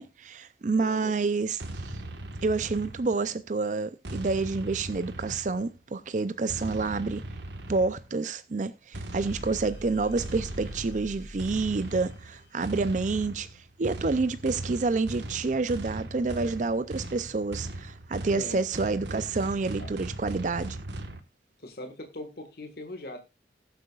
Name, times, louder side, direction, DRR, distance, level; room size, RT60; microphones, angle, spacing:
voice 1, 0.0-1.9 2.4-7.2 7.7-20.8, right 3 dB, 45° right, 0.5 m, -28 dB
voice 2, 0.8-1.1 18.4-18.7 19.8-19.9 21.6-23.2, left 1 dB, 55° left, 1.6 m, -40 dB
sound 1, 1.6-3.4 4.0-5.8 6.5-8.1 8.9-21.2, right 1 dB, 75° right, 1.4 m, -39 dB
sound 2, 9.2-12.8, equal, 85° left, 3.4 m, -44 dB
19.5 x 7.7 x 2.4 m
head